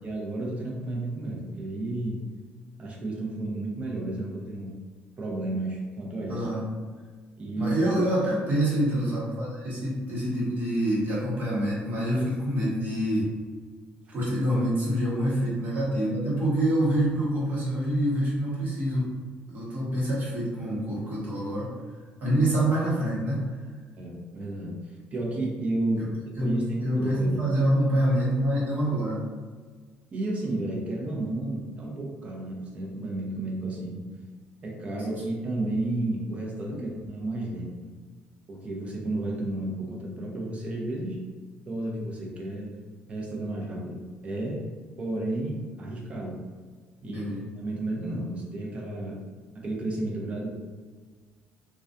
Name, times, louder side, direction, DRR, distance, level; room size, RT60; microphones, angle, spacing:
voice 1, 0.0-2.2 2.8-4.7 5.2-6.5 7.4-7.8 23.9-26.1 26.4-27.4 30.1-34.0 34.6-37.7 38.5-41.2 41.7-42.7 43.1-44.6 45.0-46.4 47.0-49.2 49.5-50.5, right 2 dB, 35° right, -2 dB, 0.7 m, -32 dB
voice 2, 6.3-6.6 7.6-13.3 14.1-19.1 19.5-21.7 22.2-23.5 26.0-26.1 26.4-26.5 26.8-29.2 47.1-47.4, right 1 dB, 50° right, -7 dB, 1.1 m, -26 dB
2.3 x 2.2 x 2.5 m, 1.5 s
cardioid pair, 105°, 4 cm